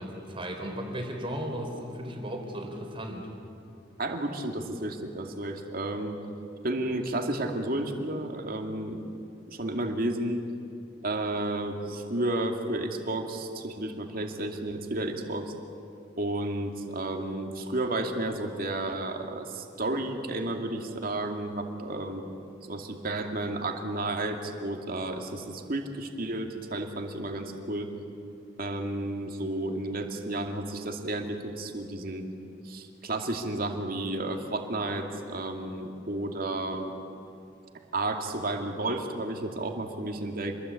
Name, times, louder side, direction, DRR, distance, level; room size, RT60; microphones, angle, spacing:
voice 1, 0.0-3.3, equal, 30° right, 3 dB, 4.0 m, -35 dB
voice 2, 4.0-6.2 6.6-9.1 9.5-10.4 11.0-15.5 16.2-22.3 22.6-28.0 28.6-32.3 32.6-36.9 37.9-40.5, right 1 dB, 50° right, 3 dB, 2.5 m, -32 dB
27.5 x 22.0 x 8.5 m, 2.6 s
head